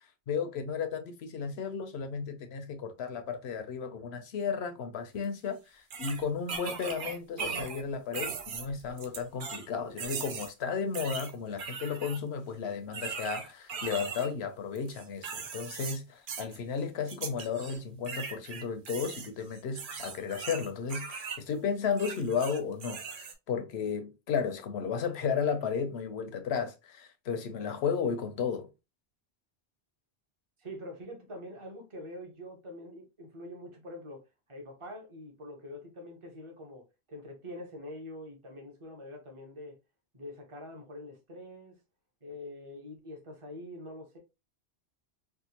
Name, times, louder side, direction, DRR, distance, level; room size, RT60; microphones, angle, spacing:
voice 1, 0.3-28.7, left 6 dB, 80° left, 0.9 m, -34 dB
sound 1, 5.2-5.3 5.9-7.8 8.1-9.7 10.0-10.5 10.9-12.2 12.9-14.3 14.7-16.0 16.3-16.6 17.1-17.8 18.0-21.4 21.9-23.3, right 5 dB, 60° right, 0.7 m, -39 dB
voice 2, 30.6-34.2 34.5-39.8 40.1-41.7 42.2-44.2, left 1 dB, 30° right, 0.9 m, -45 dB
3.5 x 2.3 x 2.8 m
omnidirectional pair, 1.1 m